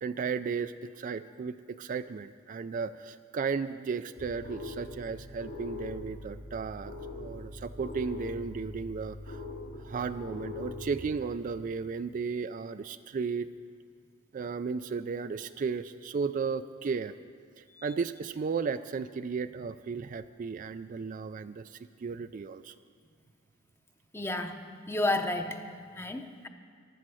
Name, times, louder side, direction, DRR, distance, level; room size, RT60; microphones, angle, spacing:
voice 1, 0.0-9.4 9.8-13.5 14.3-17.1 17.6-22.7, right 5 dB, 40° right, 11 dB, 0.3 m, -34 dB
sound 1, 4.2-11.0, left 3 dB, 75° left, 2.3 m, -42 dB
voice 2, 24.1-24.6 24.9-26.5, left 2 dB, 10° left, 7 dB, 0.7 m, -32 dB
16.0 x 11.5 x 6.2 m, 2.1 s
head